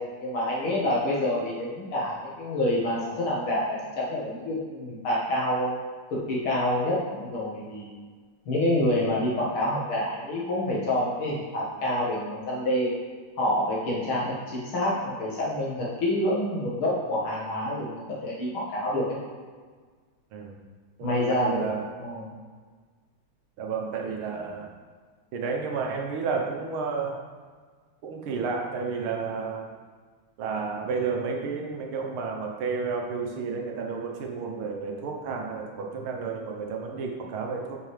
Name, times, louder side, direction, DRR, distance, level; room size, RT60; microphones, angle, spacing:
voice 1, 0.0-5.8 6.1-7.9 8.5-12.9 13.4-19.1 21.0-21.6 22.0-22.2, left 1 dB, 80° left, -6 dB, 2.6 m, -27 dB
voice 2, 21.0-21.8 23.6-24.7 25.3-27.2 28.0-29.7 30.4-37.8, right 5 dB, 80° right, 1 dB, 1.8 m, -31 dB
9.3 x 5.3 x 3.3 m, 1.5 s
omnidirectional pair, 2.3 m